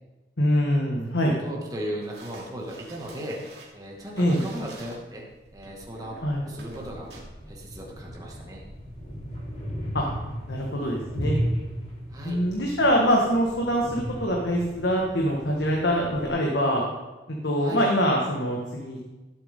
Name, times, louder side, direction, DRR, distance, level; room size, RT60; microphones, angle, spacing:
voice 1, 0.4-1.4 4.2-4.4 6.2-6.4 9.9-10.1 10.5-11.4 12.2-16.8 17.3-19.0, equal, 75° left, -1 dB, 1.7 m, -24 dB
voice 2, 1.4-3.4 3.7-5.3 5.5-7.1 7.5-8.6 12.1-12.4 17.6-17.8, equal, 20° right, -1 dB, 2.0 m, -37 dB
sound 1, 2.0-7.2, right 2 dB, 60° right, 2.9 m, -47 dB
sound 2, 7.4-16.3, equal, 40° left, 4.6 m, -35 dB
16.5 x 8.2 x 3.8 m, 1.1 s
head